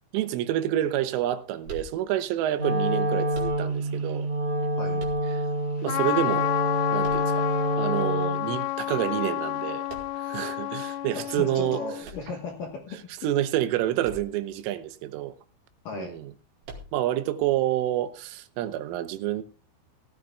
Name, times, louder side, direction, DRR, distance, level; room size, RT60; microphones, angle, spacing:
voice 1, 0.1-4.3 5.3-5.4 5.8-6.5 6.9-7.5 7.8-9.8 10.2-11.8 13.2-15.3 15.9-16.3 16.9-19.4, right 13 dB, 85° right, 3.4 m, -28 dB
sound 1, 1.6-2.4 3.3-4.0 5.0-5.7 7.0-7.8 9.9-10.4 12.0-12.9 14.0-14.6 14.9-15.0 16.6-17.3, right 2 dB, 60° right, 4.0 m, -44 dB
Wind instrument woodwind instrument, 2.5-8.5, equal, 40° right, 1.4 m, -27 dB
Trumpet, 5.9-12.1, left 14 dB, 85° left, 3.5 m, -30 dB
voice 2, 11.1-13.0 15.8-16.1, left 4 dB, 70° left, 2.1 m, -36 dB
18.0 x 13.0 x 2.3 m
omnidirectional pair, 5.8 m